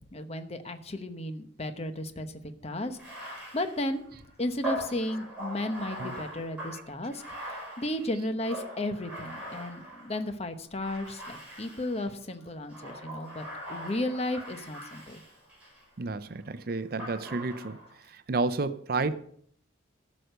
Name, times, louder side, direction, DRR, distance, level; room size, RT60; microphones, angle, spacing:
voice 1, 0.1-2.3 2.6-4.0 4.4-7.2 7.5-15.2, left 1 dB, 30° left, 9 dB, 0.9 m, -34 dB
Bathtub (filling or washing), 2.9-10.3 10.8-12.1 12.7-15.8 17.0-18.0, equal, 5° right, 5.7 m, -41 dB
voice 2, 16.0-17.8 18.1-19.1, right 3 dB, 50° right, 13 dB, 0.5 m, -31 dB
12.5 x 6.4 x 6.6 m, 0.65 s
head